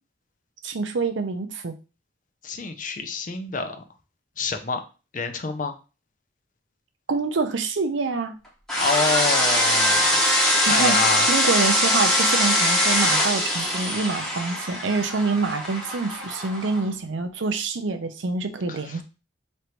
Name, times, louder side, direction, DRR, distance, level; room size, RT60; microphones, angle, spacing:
voice 1, 0.6-1.7 7.1-8.4 10.4-11.0 11.3-19.0, right 4 dB, 90° right, 7 dB, 0.6 m, -26 dB
voice 2, 2.4-3.8 4.4-4.8 5.1-5.7 8.7-11.3 18.7-19.0, left 4 dB, 45° left, 7 dB, 0.6 m, -28 dB
sound 1, 8.7-16.8, left 1 dB, 5° left, 0.9 m, -22 dB
3.2 x 2.6 x 4.4 m, 0.32 s
head